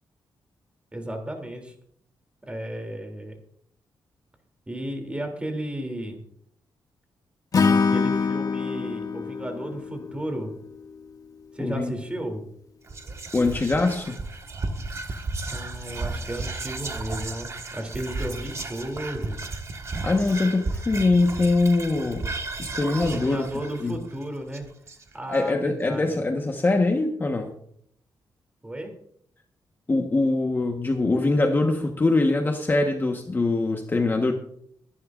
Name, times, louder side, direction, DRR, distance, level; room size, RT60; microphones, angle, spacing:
voice 1, 0.9-1.7 2.4-3.4 4.7-6.2 7.6-10.5 11.5-12.4 15.5-19.4 23.1-24.7 25.1-26.1 28.6-28.9, right 1 dB, 15° right, 3 dB, 3.0 m, -34 dB
Acoustic guitar / Strum, 7.5-10.8, left 5 dB, 45° left, 1.2 m, -24 dB
voice 2, 11.6-11.9 13.3-14.2 20.0-22.3 22.6-23.5 23.8-24.0 25.3-27.5 29.9-34.3, left 2 dB, 25° left, 3 dB, 1.3 m, -23 dB
Whispering, 12.9-25.4, right 3 dB, 35° right, 1.6 m, -34 dB
23.5 x 10.5 x 2.5 m, 0.66 s
cardioid pair, 120°, 8 cm